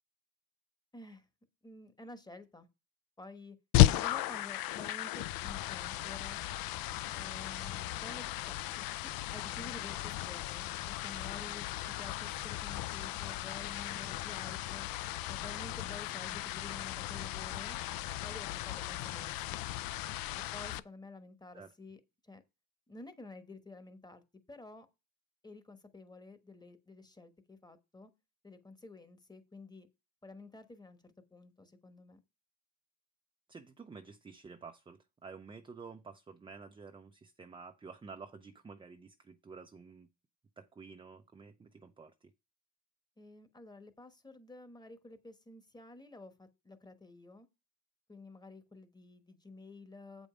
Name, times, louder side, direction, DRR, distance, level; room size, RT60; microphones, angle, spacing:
voice 1, 0.9-1.2 1.6-2.7 3.2-3.6 3.9-6.4 7.1-11.7 12.0-14.9 15.3-17.8 18.2-19.6 20.5-22.4 22.9-24.2 24.5-24.9 25.4-28.1 28.4-29.9 30.2-32.2 43.2-47.5 48.1-50.3, left 2 dB, 10° left, 1.1 m, -51 dB
sound 1, 3.7-20.8, left 15 dB, 60° left, 0.5 m, -34 dB
voice 2, 33.5-40.1 40.6-42.3, right 5 dB, 15° right, 0.4 m, -51 dB
8.0 x 5.3 x 4.9 m
cardioid pair, 130°, 39 cm